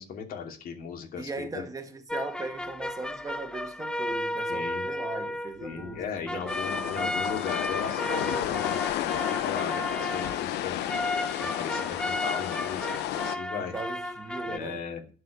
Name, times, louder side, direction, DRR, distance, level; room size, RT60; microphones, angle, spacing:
voice 1, 0.0-1.6 4.4-4.8 5.2-10.8 11.3-13.7 14.4-15.0, left 7 dB, 60° left, 2.7 m, -37 dB
voice 2, 1.2-7.2 13.5-14.8, right 3 dB, 20° right, 1.8 m, -39 dB
sound 1, 2.1-14.6, left 1 dB, 5° left, 0.5 m, -34 dB
sound 2, 6.5-13.4, left 13 dB, 80° left, 0.8 m, -32 dB
11.5 x 5.1 x 8.2 m
cardioid pair, 110°, 17 cm